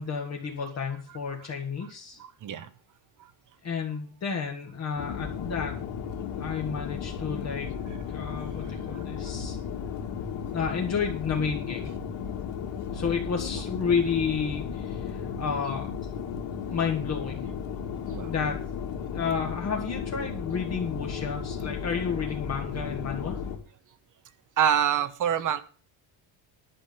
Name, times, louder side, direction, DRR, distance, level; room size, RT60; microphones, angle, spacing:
voice 1, 0.0-2.2 3.6-5.8 6.4-7.7 8.1-9.6 10.5-11.9 12.9-15.9 16.7-17.5 18.3-18.7 19.1-23.4, left 6 dB, 35° left, 1.8 m, -31 dB
voice 2, 2.2-2.7 3.2-3.3 8.3-8.4 8.6-9.0 18.1-18.3 24.6-25.6, right 9 dB, 40° right, 1.1 m, -27 dB
sound 1, 5.0-23.6, left 7 dB, 80° left, 2.8 m, -34 dB
11.5 x 6.3 x 7.0 m
cardioid pair, 160°, 46 cm